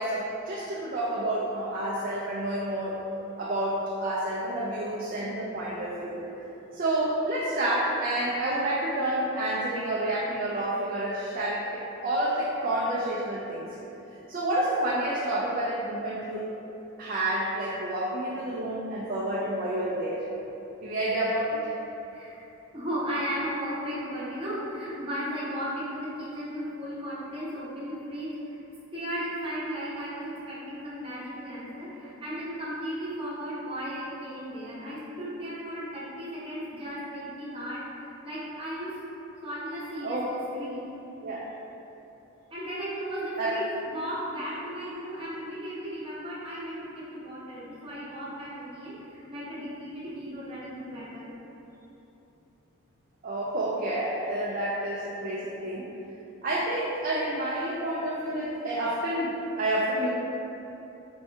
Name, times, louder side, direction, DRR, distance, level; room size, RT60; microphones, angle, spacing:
voice 1, 0.0-3.0 3.4-6.2 6.7-13.6 14.3-16.5 17.0-20.2 20.8-21.7 40.0-40.3 41.2-41.5 43.4-43.6 53.2-55.9 56.4-60.1, right 1 dB, 45° right, -6 dB, 0.5 m, -29 dB
voice 2, 5.9-6.5 22.1-22.4 22.7-28.6 28.9-39.0 39.4-40.9 42.5-51.3, equal, 25° right, -8 dB, 1.0 m, -35 dB
4.4 x 2.8 x 3.4 m, 3.0 s
head